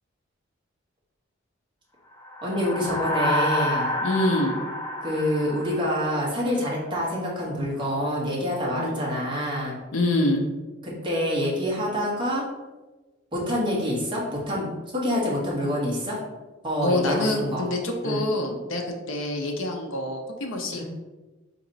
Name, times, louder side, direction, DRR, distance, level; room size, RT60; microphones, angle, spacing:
sound 1, 2.2-6.7, left 1 dB, 15° left, 0.5 m, -29 dB
voice 1, 2.4-3.9 5.0-9.7 10.8-12.4 13.3-16.2 16.6-17.6 18.0-18.2 20.7-20.8, equal, 25° right, -6 dB, 1.2 m, -27 dB
voice 2, 4.0-4.6 8.8-9.0 9.9-10.4 16.8-20.8, left 1 dB, 75° left, 3 dB, 0.7 m, -26 dB
4.2 x 3.0 x 4.0 m, 1.2 s
head